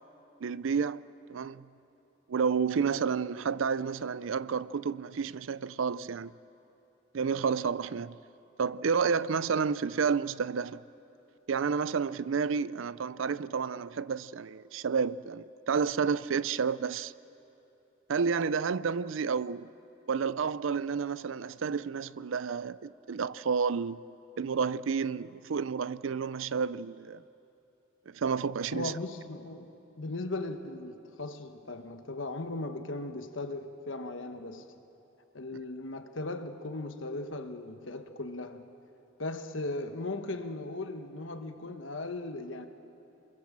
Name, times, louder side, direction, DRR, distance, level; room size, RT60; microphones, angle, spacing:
voice 1, 0.4-1.7 2.3-6.3 7.1-8.2 8.6-10.8 11.5-17.1 18.1-19.7 20.1-24.0 24.4-27.2 28.1-28.9, right 6 dB, 85° right, 0.5 m, -30 dB
voice 2, 28.7-29.7 30.0-34.6 35.3-38.7 39.2-42.7, left 2 dB, 80° left, 1.3 m, -37 dB
28.5 x 22.0 x 7.4 m
head